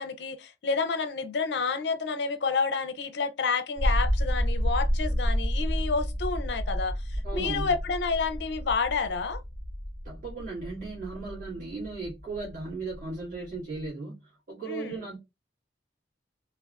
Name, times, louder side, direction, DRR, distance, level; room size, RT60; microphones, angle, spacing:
voice 1, 0.0-9.4 14.7-15.0, left 4 dB, 70° left, 0.4 m, -29 dB
sound 1, 3.8-13.9, equal, 20° left, 0.6 m, -30 dB
voice 2, 7.2-7.7 10.0-15.2, right 3 dB, 50° right, 1.7 m, -36 dB
3.4 x 2.4 x 2.3 m
head